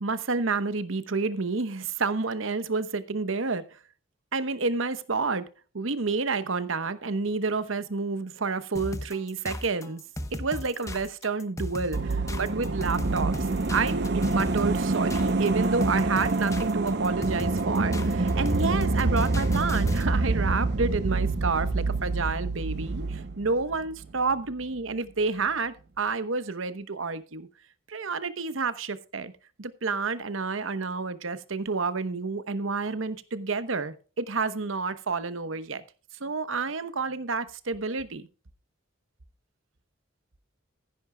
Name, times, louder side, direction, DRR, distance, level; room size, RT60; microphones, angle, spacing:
voice 1, 0.0-3.6 4.3-5.4 5.7-10.0 10.4-13.4 13.7-27.5 27.9-29.3 29.6-35.8 36.2-38.3, right 4 dB, 80° right, 1.0 m, -29 dB
sound 1, 8.8-20.1, left 1 dB, 15° left, 0.9 m, -36 dB
sound 2, 11.9-24.3 24.6-24.7, right 3 dB, 55° right, 0.6 m, -27 dB
15.0 x 10.5 x 2.3 m
head